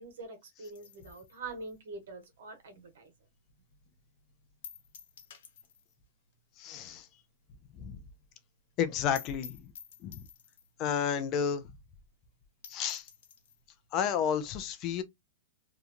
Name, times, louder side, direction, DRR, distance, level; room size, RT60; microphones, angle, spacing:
voice 1, 0.0-3.1, right 3 dB, 80° right, 1.2 m, -44 dB
sound 1, 0.6-3.3 3.6-3.7 4.0-4.1 4.6-6.0 6.3-6.4 6.7-6.8 7.2-7.3 7.6-7.7 7.9-8.0 8.3-8.4 8.8-8.9 9.2-10.8 11.5-11.6 11.9-12.0 12.4-12.5 12.6-13.6, left 8 dB, 70° left, 1.0 m, -51 dB
voice 2, 6.6-7.1 7.8-8.0 8.8-9.6 10.0-10.3 10.8-11.7 12.7-13.1 13.9-15.0, left 8 dB, 30° left, 0.4 m, -31 dB
2.9 x 2.3 x 2.5 m
supercardioid pair, 155°, 0 cm